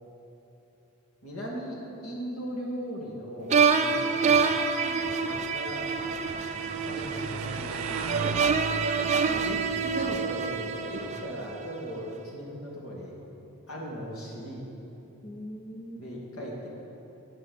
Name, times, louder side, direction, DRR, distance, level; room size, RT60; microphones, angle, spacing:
voice 1, 1.2-1.8 2.0-4.5 5.2-5.9 6.5-8.8 9.4-13.1 13.7-14.7 16.0-16.7, equal, 80° left, -3 dB, 2.5 m, -38 dB
sound 1, 3.5-11.7, right 5 dB, 30° right, 0.5 m, -27 dB
voice 2, 4.6-5.1 9.1-9.8 15.2-16.0, right 1 dB, 45° left, 2 dB, 0.8 m, -43 dB
sound 2, 5.3-11.5, right 4 dB, 80° right, 0.6 m, -39 dB
9.1 x 8.7 x 7.8 m, 3.0 s
head